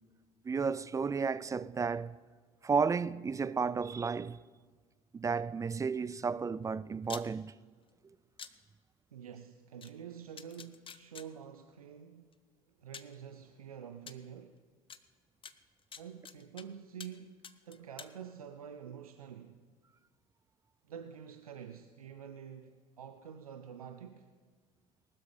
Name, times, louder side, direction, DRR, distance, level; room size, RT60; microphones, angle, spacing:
voice 1, 0.4-2.2 2.6-4.4 5.1-7.5, right 5 dB, 20° right, 0.3 m, -32 dB
sound 1, 7.0-7.3 8.4-8.5 9.8-9.9 10.4-11.3 12.3-12.4 12.9-13.1 14.1-14.2 14.9-15.0 15.4-16.6 17.0-17.2 17.4-18.1, left 6 dB, 30° left, 0.7 m, -47 dB
voice 2, 9.1-12.4 12.8-14.6 16.0-19.6 20.9-24.3, right 8 dB, 90° right, 0.5 m, -48 dB
19.0 x 12.5 x 3.3 m
hypercardioid pair, 60°, 18 cm